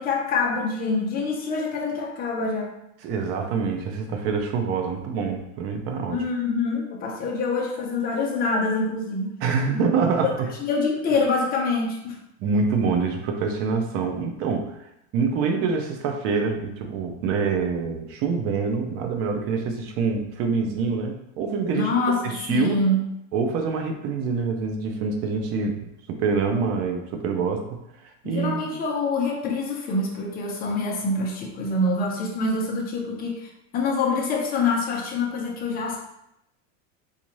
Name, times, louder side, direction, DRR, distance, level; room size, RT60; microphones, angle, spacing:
voice 1, 0.0-2.7 6.1-9.3 9.7-9.9 10.2-12.2 21.7-23.0 28.2-36.0, left 3 dB, 25° left, -1 dB, 0.7 m, -25 dB
voice 2, 3.0-6.2 9.4-10.5 12.4-14.8 15.1-22.8 23.3-28.7, right 5 dB, 35° right, 4 dB, 0.5 m, -26 dB
4.0 x 2.4 x 3.0 m, 0.82 s
supercardioid pair, 150°, 39 cm